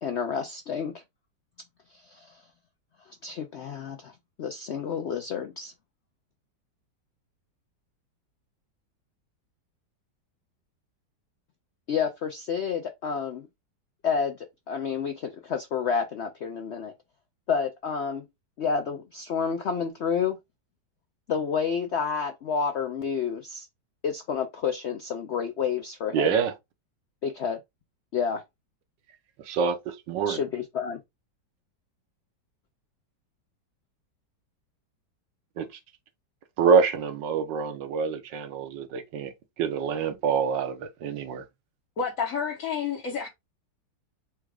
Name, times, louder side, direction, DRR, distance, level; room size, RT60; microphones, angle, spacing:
voice 1, 0.0-0.9 1.9-2.4 3.2-5.7 11.9-13.4 14.0-16.9 17.5-18.2 18.6-20.4 21.3-23.7 24.0-26.3 27.2-27.6 28.1-28.4 30.3-31.0, left 6 dB, 75° left, 0.6 m, -29 dB
voice 2, 26.1-26.5 29.4-30.4 35.6-35.7 36.6-39.3 39.6-41.4, right 6 dB, 90° right, 1.5 m, -26 dB
voice 3, 42.0-43.3, left 6 dB, 55° left, 1.3 m, -29 dB
4.4 x 2.4 x 4.6 m
omnidirectional pair, 1.9 m